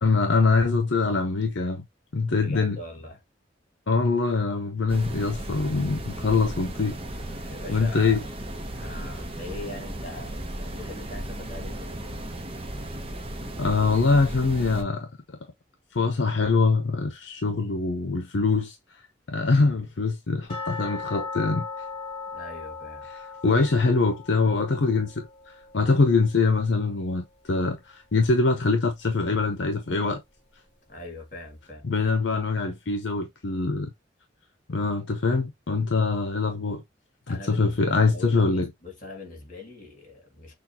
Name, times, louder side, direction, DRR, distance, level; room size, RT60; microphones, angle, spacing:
voice 1, 0.0-1.8 2.1-2.8 3.9-7.0 7.7-8.2 13.6-15.1 15.9-18.7 19.3-21.7 23.4-30.2 31.8-33.9 34.7-36.8 37.3-38.7, left 3 dB, 75° left, 0.7 m, -23 dB
voice 2, 2.4-3.2 7.4-12.2 22.3-23.1 30.9-31.9 37.3-40.5, left 2 dB, 45° left, 2.1 m, -42 dB
sound 1, 4.9-14.8, right 1 dB, 30° right, 0.8 m, -35 dB
sound 2, 20.5-27.3 27.6-27.7 28.2-28.3 28.9-29.0, left 4 dB, 30° left, 2.9 m, -39 dB
6.3 x 2.4 x 2.8 m
head